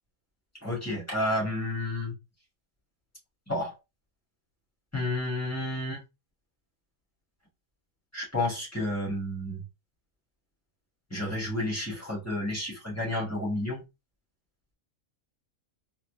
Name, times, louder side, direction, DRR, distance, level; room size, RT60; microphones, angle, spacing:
voice 1, 0.6-2.1 3.5-3.7 4.9-6.0 8.1-9.6 11.1-13.8, left 1 dB, 10° left, -4 dB, 1.8 m, -31 dB
4.2 x 2.7 x 2.7 m, 0.25 s
omnidirectional pair, 1.5 m